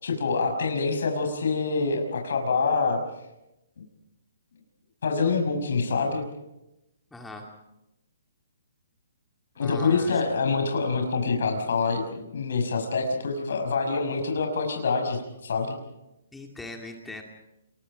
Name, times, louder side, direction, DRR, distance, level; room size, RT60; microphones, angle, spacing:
voice 1, 0.0-3.0 5.0-6.3 9.6-15.7, left 4 dB, 65° left, 3 dB, 6.0 m, -26 dB
voice 2, 7.1-7.5 9.6-10.1 16.3-17.2, left 2 dB, 5° left, 2 dB, 2.3 m, -40 dB
29.0 x 22.0 x 5.1 m, 0.90 s
hypercardioid pair, 165°, 0 cm